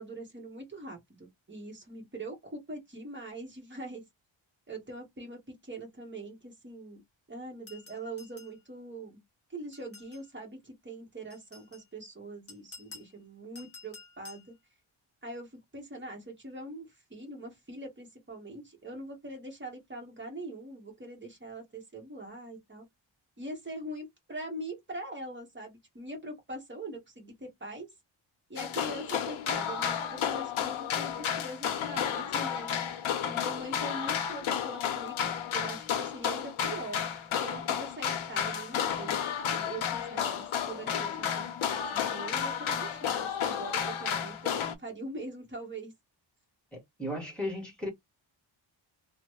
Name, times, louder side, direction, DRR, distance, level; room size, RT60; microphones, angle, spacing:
voice 1, 0.0-4.0 4.7-7.0 7.3-9.2 9.5-14.5 15.2-22.9 23.4-27.9 28.5-32.8 33.3-37.1 37.4-45.9, right 2 dB, 25° right, 1.3 m, -43 dB
sound 1, 7.7-8.6 9.7-10.3 11.3-11.8 12.5-13.1 13.6-14.5, left 3 dB, 30° left, 0.9 m, -51 dB
sound 2, 28.6-44.7, left 8 dB, 80° left, 0.7 m, -32 dB
voice 2, 46.7-47.9, left 1 dB, ahead, 1.1 m, -35 dB
3.1 x 2.1 x 3.0 m
wide cardioid pair, 175°, 48 cm